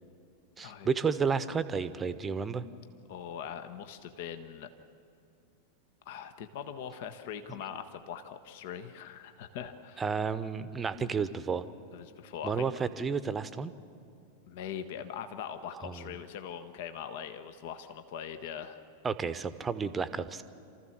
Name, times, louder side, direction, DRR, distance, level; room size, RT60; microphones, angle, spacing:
voice 1, 0.6-2.7 10.0-11.6 12.4-13.7 15.8-16.0 19.0-20.4, right 5 dB, 15° right, 14 dB, 0.9 m, -31 dB
voice 2, 3.1-4.7 6.0-10.0 11.9-12.9 14.5-18.8, left 8 dB, 50° left, 10 dB, 1.0 m, -41 dB
28.0 x 14.0 x 7.4 m, 2.5 s
figure-of-eight pair, 90°, 0 cm